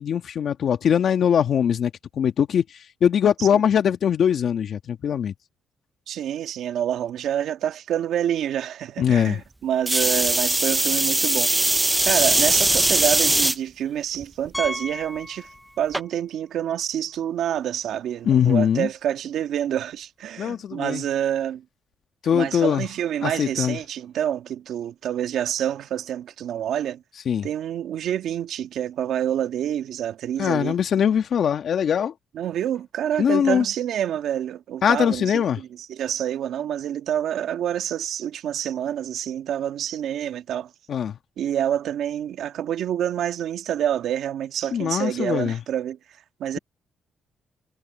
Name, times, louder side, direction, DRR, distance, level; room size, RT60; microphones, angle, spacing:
voice 1, 0.0-2.6 3.0-5.3 9.0-9.4 18.2-18.9 20.4-21.0 22.2-22.9 23.2-23.8 27.3-27.5 30.4-32.1 33.2-33.7 34.8-35.6 40.9-41.2 44.7-45.6, left 8 dB, 60° left, 2.0 m, -21 dB
voice 2, 6.1-11.5 12.0-15.5 15.8-21.6 22.3-27.0 27.4-30.7 32.3-40.7 41.4-46.0 46.4-46.6, right 10 dB, 75° right, 1.7 m, -27 dB
sound 1, 9.9-13.6 14.2-14.7 15.9-16.0, right 2 dB, 15° right, 0.9 m, -20 dB
Piano, 14.5-16.1 16.4-16.6 17.2-17.3 17.5-17.6 19.7-19.8, left 1 dB, 5° left, 2.9 m, -35 dB
cardioid pair, 90°, 0 cm